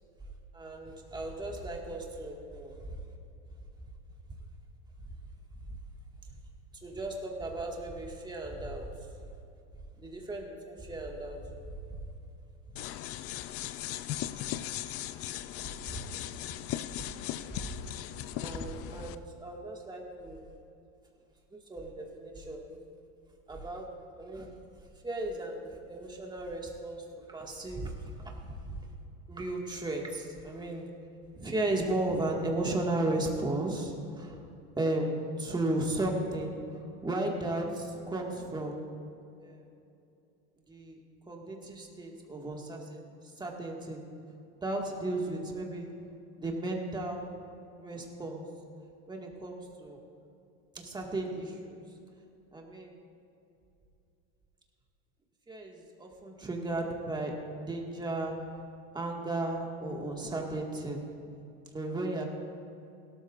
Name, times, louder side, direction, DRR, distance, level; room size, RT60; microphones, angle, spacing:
voice 1, 0.5-3.0 6.8-8.9 10.0-11.4 11.9-12.0 15.9-16.1 17.5-17.8 18.4-20.5 21.5-22.8 23.5-23.9 24.1-24.5 25.0-28.7 29.3-30.9 31.3-34.4 34.8-38.8 39.4-39.7 40.7-41.0 41.3-44.0 44.6-45.9 46.4-47.3 47.8-48.5 49.1-50.0 50.7-51.8 52.5-53.0 55.5-58.4 58.9-61.0 61.7-62.2, right 2 dB, 10° right, 0 dB, 2.0 m, -35 dB
sound 1, 12.8-19.2, left 13 dB, 45° left, 0.5 m, -38 dB
17.0 x 13.0 x 2.6 m, 2.7 s
supercardioid pair, 110°, 34 cm